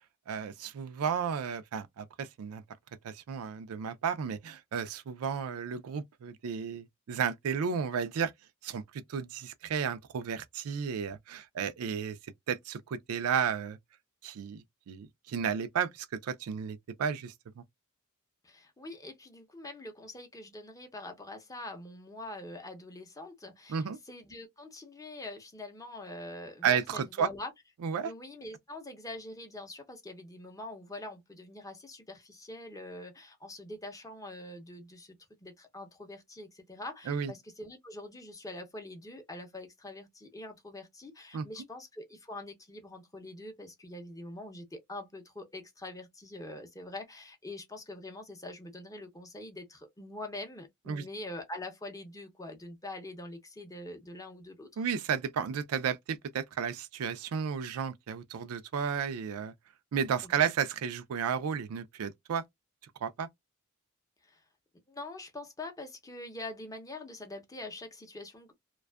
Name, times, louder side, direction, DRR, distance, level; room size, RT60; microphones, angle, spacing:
voice 1, 0.3-2.6 3.0-8.3 8.6-12.2 12.5-13.8 14.2-17.6 23.7-24.0 26.6-27.3 27.8-28.1 37.1-37.3 41.3-41.5 50.9-51.0 54.8-59.5 59.9-62.4 63.0-63.3, right 7 dB, 85° right, 0.4 m, -33 dB
voice 2, 18.4-27.5 28.0-35.2 35.4-54.8 60.2-60.5 64.2-64.4 64.9-68.5, left 2 dB, 15° left, 0.6 m, -44 dB
2.5 x 2.2 x 2.2 m
head